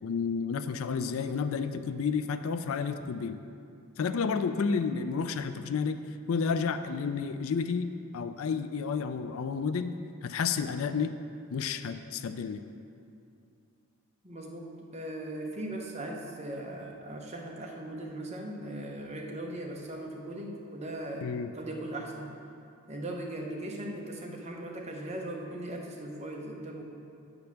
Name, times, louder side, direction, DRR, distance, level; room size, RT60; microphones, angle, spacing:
voice 1, 0.0-3.4 4.0-6.0 6.3-7.9 8.1-9.9 10.2-11.2 11.5-12.6 21.2-21.5, left 5 dB, 70° left, 10 dB, 0.4 m, -31 dB
voice 2, 14.2-21.3 21.5-22.3 22.9-26.8, right 1 dB, 30° right, 0 dB, 0.9 m, -39 dB
8.0 x 5.3 x 5.8 m, 2.5 s
head